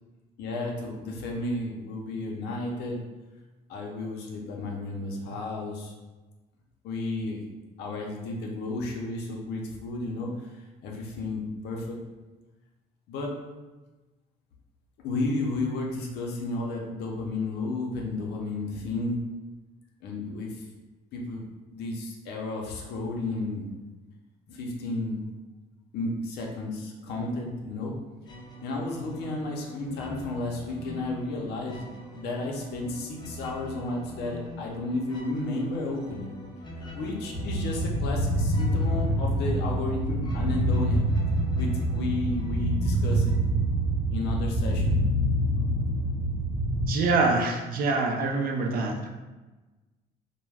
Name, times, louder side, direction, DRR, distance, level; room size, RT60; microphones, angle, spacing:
voice 1, 0.4-3.0 3.7-5.9 6.8-7.4 7.8-10.3 10.8-12.0 13.1-13.3 15.0-19.2 20.0-20.5 21.1-23.7 24.5-25.2 25.9-27.9 28.6-31.8 32.1-36.3 36.9-41.1 41.6-43.3 44.1-45.0, left 2 dB, 75° left, 0 dB, 0.6 m, -32 dB
sound 1, 28.2-43.7, left 2 dB, 25° left, 0.5 m, -42 dB
sound 2, 37.3-46.9, right 1 dB, 45° right, 0.8 m, -26 dB
voice 2, 46.9-49.1, right 3 dB, 60° right, 2 dB, 0.4 m, -25 dB
2.3 x 2.1 x 3.3 m, 1.2 s
cardioid pair, 110°, 17 cm